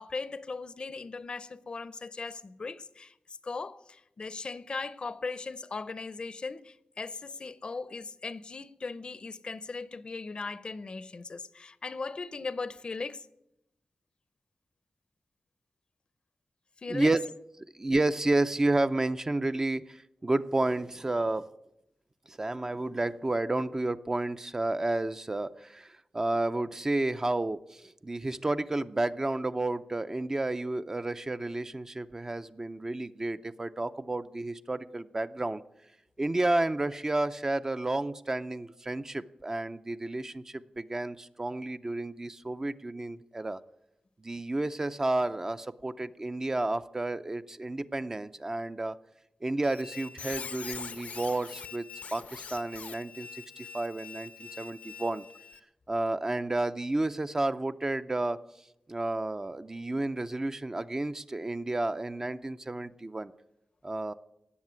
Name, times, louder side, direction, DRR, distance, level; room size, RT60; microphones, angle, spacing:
voice 1, 0.0-3.1 3.4-13.3 16.8-17.1, left 4 dB, 40° left, 0.6 m, -38 dB
voice 2, 16.9-17.3 17.7-21.5 22.3-35.6 36.2-43.6 44.2-49.0 49.4-51.9 52.1-55.2 55.9-58.4 58.9-63.3 63.8-64.1, right 2 dB, 20° right, 0.5 m, -31 dB
Squeak, 49.6-55.6, left 6 dB, 85° left, 0.8 m, -43 dB
18.0 x 7.3 x 9.4 m
wide cardioid pair, 140°, 2 cm